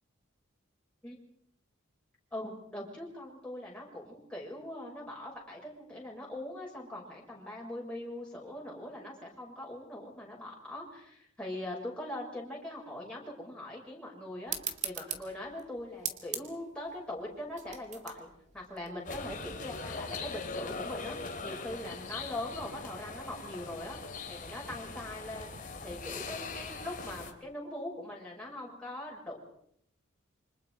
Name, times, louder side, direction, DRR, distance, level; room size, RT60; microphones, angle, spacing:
voice 1, 2.3-14.6 14.8-18.3 18.5-24.0 24.3-25.5 25.8-29.4, left 1 dB, 5° left, -4 dB, 6.0 m, -41 dB
sound 1, 14.5-19.6, right 8 dB, 35° right, 2.1 m, -41 dB
sound 2, 19.1-27.3, left 4 dB, 40° left, 2.7 m, -41 dB
28.0 x 25.5 x 4.8 m, 0.70 s
head